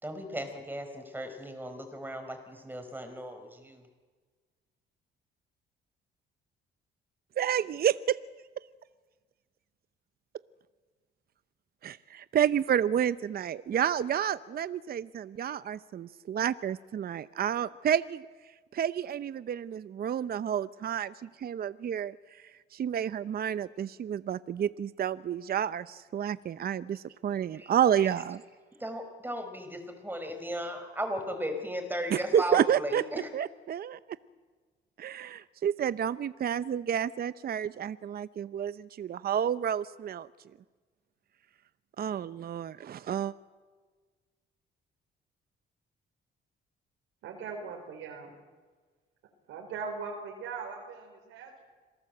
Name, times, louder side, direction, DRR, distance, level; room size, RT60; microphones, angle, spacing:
voice 1, 0.0-3.8 27.5-27.7 28.0-28.1 28.8-33.3, equal, 10° right, 7 dB, 5.1 m, -36 dB
voice 2, 7.4-7.9 11.8-18.3 18.7-22.1 22.7-28.4 32.1-33.0 33.3-34.2 35.0-40.3 42.0-43.3, right 9 dB, 50° right, 15 dB, 0.7 m, -30 dB
voice 3, 47.2-48.4 49.5-51.6, right 5 dB, 90° right, 2 dB, 4.0 m, -40 dB
26.5 x 18.5 x 7.9 m, 1.4 s
cardioid pair, 90°, 20 cm